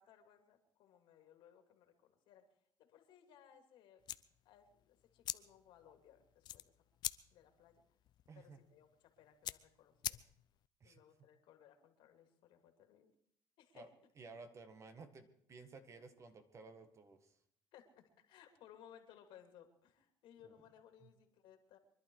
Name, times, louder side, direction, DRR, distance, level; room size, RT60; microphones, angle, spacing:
voice 1, 0.0-2.5 2.8-4.1 4.4-6.8 7.3-7.8 8.3-10.2 10.8-13.1 13.6-13.9 17.7-21.8, left 9 dB, 75° left, 5 dB, 2.7 m, -63 dB
sound 1, 4.0-10.7, left 12 dB, 55° left, 0.6 m, -47 dB
voice 2, 8.3-8.6 10.8-11.0 13.7-13.9 14.2-17.3 20.4-20.5 21.0-21.1, right 4 dB, 35° right, 8 dB, 1.7 m, -55 dB
24.5 x 11.5 x 4.8 m, 0.68 s
cardioid pair, 115°, 9 cm